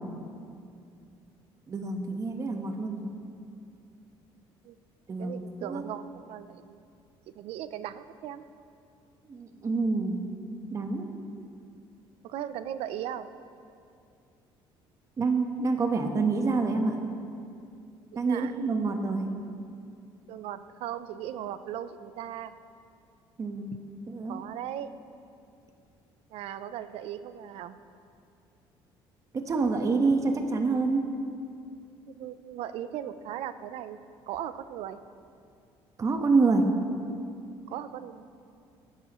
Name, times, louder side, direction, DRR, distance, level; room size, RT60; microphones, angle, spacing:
voice 1, 1.7-3.1 5.1-5.8 9.3-10.2 10.7-11.1 15.2-17.0 18.1-19.3 23.4-23.7 24.1-24.4 29.5-31.0 36.0-36.6, right 3 dB, 30° right, 4 dB, 1.2 m, -27 dB
voice 2, 5.2-6.8 7.4-8.4 12.2-13.3 18.2-18.5 20.3-22.5 23.7-23.8 24.3-24.9 26.3-27.8 32.1-34.0 34.3-35.0 37.7-38.3, right 11 dB, 75° right, 12 dB, 0.6 m, -38 dB
19.0 x 11.5 x 3.1 m, 2.5 s
cardioid pair, 125°, 10 cm